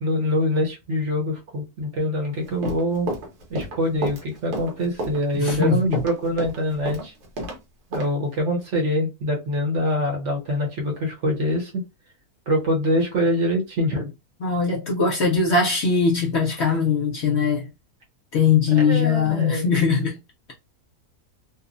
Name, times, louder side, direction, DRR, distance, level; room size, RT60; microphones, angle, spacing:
voice 1, 0.0-3.1 3.5-7.1 7.9-11.8 12.5-14.1 18.7-19.7, equal, 55° right, 1.0 m, -24 dB
Run, 2.4-7.6 7.9-8.1, right 1 dB, 90° right, 1.4 m, -30 dB
voice 2, 5.4-6.0 14.4-17.7 18.3-20.2, left 5 dB, 60° left, 0.8 m, -21 dB
3.0 x 2.0 x 2.5 m
omnidirectional pair, 1.6 m